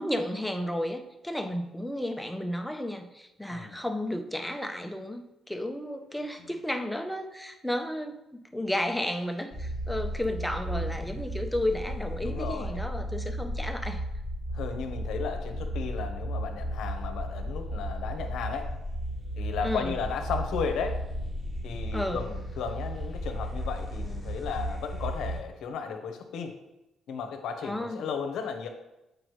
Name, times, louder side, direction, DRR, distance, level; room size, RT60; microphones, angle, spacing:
voice 1, 0.0-14.0 19.6-19.9 21.9-22.2 27.6-28.0, left 1 dB, 5° left, 5 dB, 0.7 m, -33 dB
voice 2, 3.5-3.8 6.4-6.5 12.2-12.8 14.5-18.8 19.4-21.0 21.6-26.6 27.1-28.7, left 6 dB, 80° left, 6 dB, 0.8 m, -35 dB
sound 1, 9.5-25.4, equal, 15° right, 1.7 m, -34 dB
7.6 x 5.0 x 3.2 m, 0.93 s
cardioid pair, 90°, 0 cm